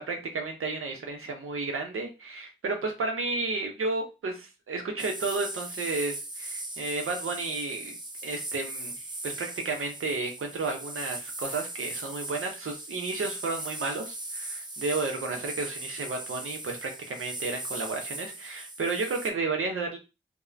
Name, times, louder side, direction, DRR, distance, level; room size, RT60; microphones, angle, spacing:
voice 1, 0.0-20.0, right 3 dB, 90° right, 3 dB, 0.6 m, -32 dB
sound 1, 5.0-19.3, right 2 dB, 20° right, 0.5 m, -39 dB
2.4 x 2.1 x 3.1 m, 0.28 s
cardioid pair, 40°, 21 cm